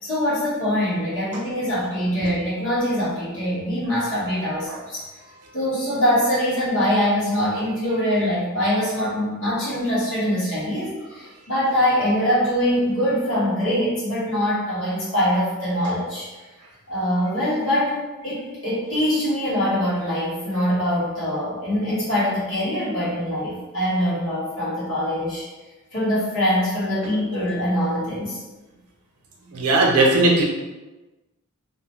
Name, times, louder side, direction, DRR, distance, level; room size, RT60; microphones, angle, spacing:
voice 1, 0.0-5.0 5.5-16.3 16.9-17.9 18.2-25.4 25.9-28.4, equal, 60° left, -10 dB, 1.5 m, -23 dB
voice 2, 29.5-30.4, right 2 dB, 80° right, -1 dB, 0.6 m, -18 dB
2.7 x 2.1 x 3.0 m, 1.2 s
head